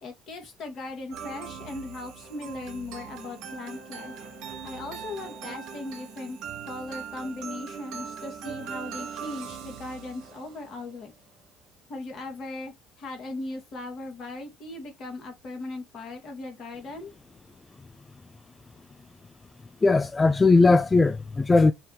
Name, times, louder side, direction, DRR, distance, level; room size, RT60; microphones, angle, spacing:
voice 1, 0.0-4.1 4.6-6.4 6.6-11.1 11.9-17.1, left 2 dB, 55° left, 2.0 m, -38 dB
sound 1, 1.1-10.8, right 7 dB, 70° right, 1.0 m, -40 dB
voice 2, 19.8-21.7, left 3 dB, 25° left, 0.3 m, -19 dB
5.6 x 2.7 x 3.0 m
hypercardioid pair, 60°, 0 cm